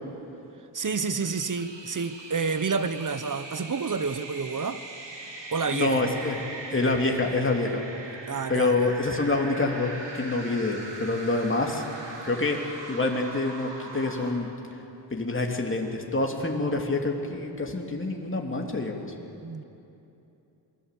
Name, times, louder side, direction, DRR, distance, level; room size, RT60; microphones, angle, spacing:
voice 1, 0.7-4.8 5.5-6.1 8.3-8.9 19.4-19.6, right 5 dB, 45° right, 1.1 m, -29 dB
sound 1, 0.9-14.3, right 2 dB, 75° right, 3.8 m, -41 dB
voice 2, 5.7-6.4 6.7-7.8 8.5-11.8 12.2-14.5 15.1-19.1, left 2 dB, 30° left, 2.7 m, -27 dB
27.5 x 20.0 x 8.3 m
wide cardioid pair, 90°, 43 cm